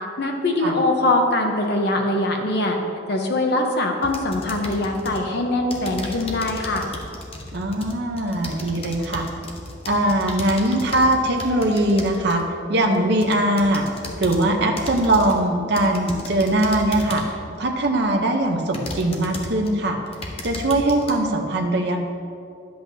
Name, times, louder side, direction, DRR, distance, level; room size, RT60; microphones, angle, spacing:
voice 1, 0.2-2.8 3.1-6.9, left 2 dB, 55° left, 2 dB, 0.8 m, -22 dB
sound 1, 4.0-5.3 5.7-12.4 12.9-14.5 14.8-15.4 15.8-17.4 18.0-18.1 18.7-19.7 20.1-21.1, left 1 dB, 30° left, 0.8 m, -35 dB
voice 2, 7.5-9.3 9.9-12.4 12.7-13.9 14.2-17.2 17.6-20.0 20.4-22.0, right 1 dB, 55° right, 2 dB, 0.7 m, -21 dB
10.5 x 7.8 x 2.7 m, 2.5 s
head